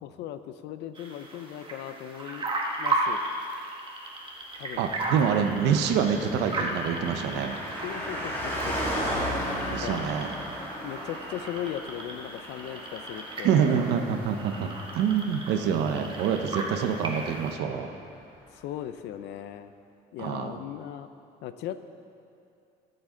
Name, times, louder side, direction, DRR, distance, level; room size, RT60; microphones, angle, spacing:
voice 1, 0.0-2.5 2.8-3.2 4.6-4.8 7.8-8.8 9.7-10.0 10.8-13.5 18.5-19.7 20.1-21.1 21.4-21.8, left 11 dB, 85° left, 11 dB, 0.6 m, -38 dB
sound 1, 0.9-17.5, right 2 dB, 30° right, 1.8 m, -36 dB
voice 2, 4.8-7.5 9.7-10.3 13.4-17.9 20.2-20.6, right 7 dB, 85° right, 5 dB, 1.0 m, -26 dB
Car passing by, 5.1-17.0 17.2-17.3, equal, 15° left, 3.2 m, -36 dB
20.0 x 7.9 x 3.9 m, 2.6 s
cardioid pair, 110°, 17 cm